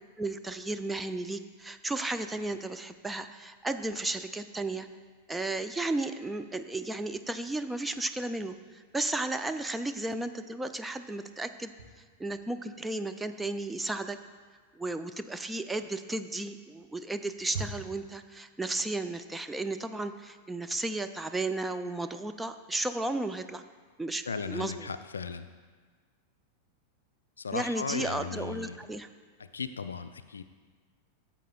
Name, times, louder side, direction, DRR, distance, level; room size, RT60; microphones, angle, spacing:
voice 1, 0.2-4.9 5.3-11.7 12.2-14.2 14.8-23.6 24.0-24.9 27.5-29.1, right 2 dB, 10° right, 8 dB, 0.4 m, -34 dB
sound 1, 11.6-12.8 13.1-18.2, right 3 dB, 55° right, 1.6 m, -45 dB
voice 2, 24.3-25.5 27.4-28.8 29.4-30.4, left 5 dB, 75° left, 11 dB, 0.4 m, -36 dB
14.0 x 7.5 x 2.3 m, 1.5 s
figure-of-eight pair, 90°, 0 cm